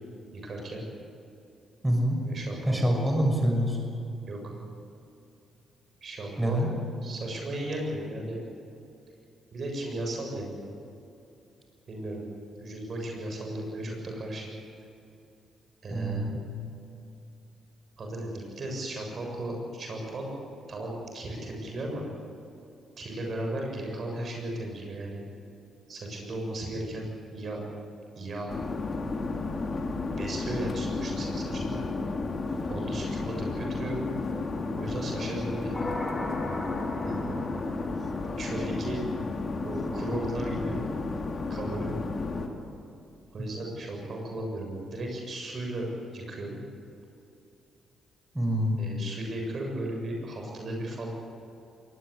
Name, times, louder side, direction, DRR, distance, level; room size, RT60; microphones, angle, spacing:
voice 1, 0.3-0.8 2.3-3.3 4.3-4.5 6.0-6.6 7.0-8.4 9.5-10.6 11.9-12.2 12.6-14.5 15.8-16.3 18.0-20.3 20.7-22.0 23.0-25.2 25.9-27.6 28.2-28.5 30.0-31.8 32.7-34.0 34.7-35.8 37.0-37.4 38.4-39.2 39.6-40.8 41.5-42.0 43.3-45.9 46.1-46.6 48.8-51.1, right 1 dB, 55° right, 1 dB, 7.4 m, -35 dB
voice 2, 1.8-2.2 2.7-3.8 6.4-6.7 15.9-16.4 43.4-43.5 48.3-48.8, equal, 10° right, 2 dB, 6.4 m, -26 dB
sound 1, 28.5-42.5, left 3 dB, 45° left, 3.2 m, -32 dB
sound 2, 35.7-39.2, left 2 dB, 25° left, 6.8 m, -37 dB
22.5 x 19.5 x 8.4 m, 2.6 s
hypercardioid pair, 50°, 0 cm